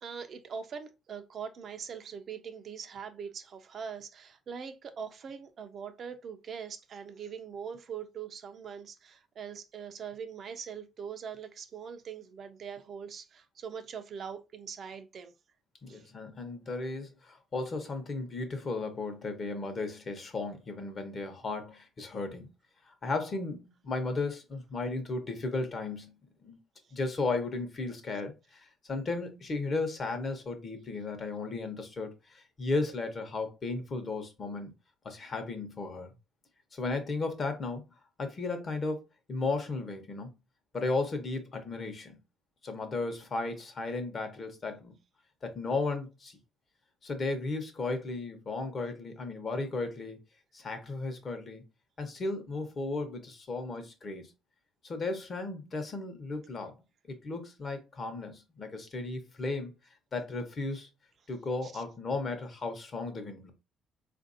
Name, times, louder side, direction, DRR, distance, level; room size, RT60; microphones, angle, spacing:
voice 1, 0.0-15.3 15.9-16.1 61.6-61.8, right 7 dB, 45° right, 0.4 m, -42 dB
voice 2, 15.8-22.5 22.9-26.1 26.4-26.6 26.9-34.7 35.0-36.1 36.7-37.8 38.2-40.3 40.7-42.1 42.6-44.9 45.4-46.4 47.0-50.2 50.5-51.6 52.0-54.3 54.8-56.7 57.2-59.7 60.1-60.9 61.3-63.5, left 3 dB, 35° left, 0.9 m, -35 dB
4.0 x 2.5 x 2.6 m
cardioid pair, 120°, 0 cm